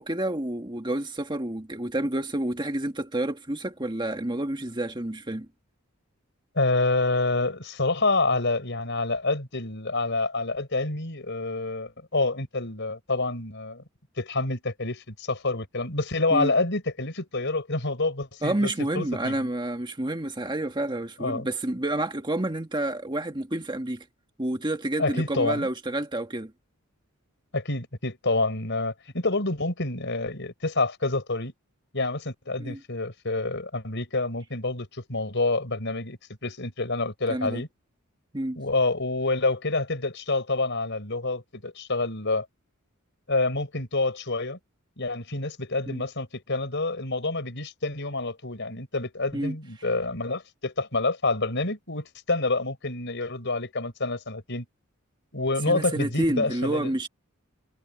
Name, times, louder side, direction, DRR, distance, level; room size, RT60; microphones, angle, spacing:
voice 1, 0.0-5.5 16.3-16.5 18.4-24.1 24.4-26.5 32.6-32.8 37.3-37.6 38.3-38.6 45.9-46.0 49.3-49.5 55.7-57.1, right 1 dB, 20° right, 1.8 m, -29 dB
voice 2, 6.6-13.8 14.2-19.5 21.2-21.5 25.0-25.7 27.5-31.5 31.9-37.7 38.6-42.5 43.3-44.6 45.0-54.7 55.3-56.9, left 3 dB, 55° left, 5.4 m, -27 dB
head